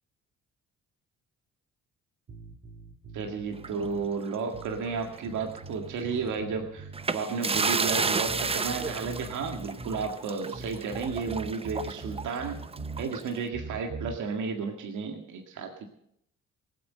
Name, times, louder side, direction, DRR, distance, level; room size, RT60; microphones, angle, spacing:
sound 1, 2.3-4.1 4.5-7.1 7.5-10.1 10.5-13.1 13.5-14.2, right 2 dB, 50° right, 2.2 m, -42 dB
voice 1, 3.1-12.6 13.0-15.9, right 5 dB, 75° right, 3 dB, 1.9 m, -33 dB
sound 2, 3.6-5.2 5.5-5.7 6.9-13.4, right 4 dB, 20° right, 0.6 m, -32 dB
18.5 x 8.5 x 7.4 m, 0.74 s
cardioid pair, 90°, 30 cm